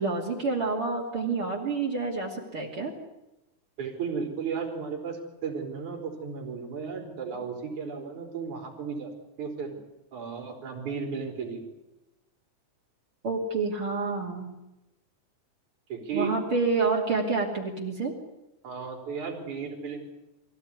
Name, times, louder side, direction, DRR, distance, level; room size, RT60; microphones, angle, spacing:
voice 1, 0.0-2.9 13.2-14.5 16.1-18.1, right 4 dB, 45° right, -2 dB, 3.5 m, -28 dB
voice 2, 3.8-9.1 9.4-9.8 10.1-11.6 15.9-16.3 18.6-20.1, right 5 dB, 80° right, 2 dB, 5.4 m, -34 dB
24.5 x 16.0 x 9.7 m, 0.99 s
omnidirectional pair, 3.4 m